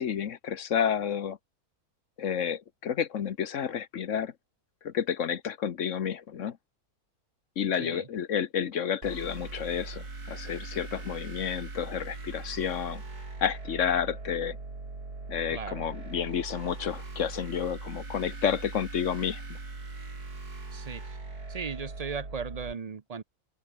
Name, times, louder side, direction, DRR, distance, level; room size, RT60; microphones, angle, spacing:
voice 1, 0.0-1.4 2.2-4.3 4.8-6.6 7.6-13.0 13.4-14.6 15.3-19.4, left 8 dB, 55° left, 1.2 m, -30 dB
sound 1, 9.0-22.7, right 3 dB, 80° right, 4.9 m, -40 dB
voice 2, 15.5-15.8 20.7-21.2 21.5-23.2, right 5 dB, 40° right, 0.6 m, -37 dB
open air
omnidirectional pair, 1.6 m